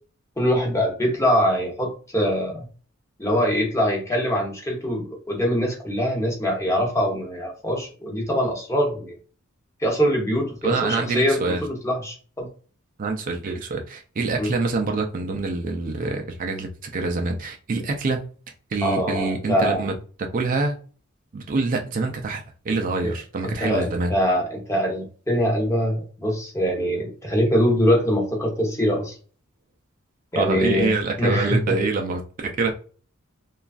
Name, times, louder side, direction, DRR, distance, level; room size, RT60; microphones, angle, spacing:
voice 1, 0.4-2.7 3.2-9.2 9.8-12.5 14.4-14.5 18.8-19.9 23.0-23.1 23.4-29.1 30.3-31.8, equal, 15° left, 0 dB, 0.8 m, -23 dB
voice 2, 10.6-11.6 13.0-18.2 18.7-19.9 20.3-20.8 21.3-24.1 30.3-32.7, right 3 dB, 40° right, 3 dB, 0.4 m, -25 dB
3.0 x 2.3 x 2.3 m, 0.40 s
head